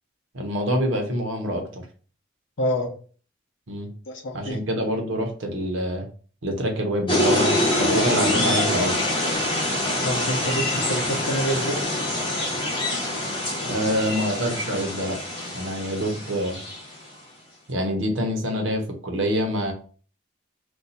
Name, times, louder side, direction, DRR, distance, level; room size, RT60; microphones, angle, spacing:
voice 1, 0.3-1.8 3.7-3.9 4.3-6.0 6.4-9.0 13.7-15.2 15.5-16.6 17.7-19.7, equal, 80° right, 0.9 m, -26 dB
voice 2, 2.6-3.0 4.1-4.6 10.0-11.8, equal, 80° left, 0.8 m, -27 dB
sound 1, 7.1-16.8, left 1 dB, 25° left, 0.8 m, -25 dB
2.6 x 2.3 x 4.1 m
head